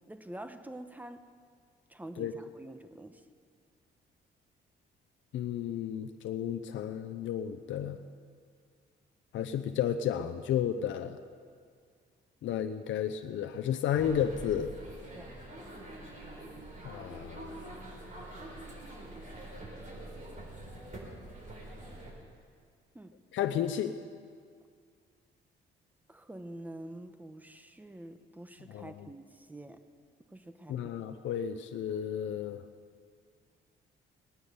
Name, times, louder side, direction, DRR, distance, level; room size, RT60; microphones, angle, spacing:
voice 1, 0.1-1.3 1.9-3.2 15.1-15.3 22.9-23.2 26.1-29.8 30.3-30.8, right 1 dB, 10° right, 9 dB, 1.0 m, -46 dB
voice 2, 5.3-8.0 9.3-11.2 12.4-14.7 16.8-17.8 23.3-24.0 28.7-29.1 30.7-32.6, left 9 dB, 70° left, 6 dB, 0.7 m, -33 dB
sound 1, 13.9-22.1, right 1 dB, 40° right, 4.2 m, -45 dB
19.0 x 9.5 x 6.9 m, 2.1 s
cardioid pair, 90°, 20 cm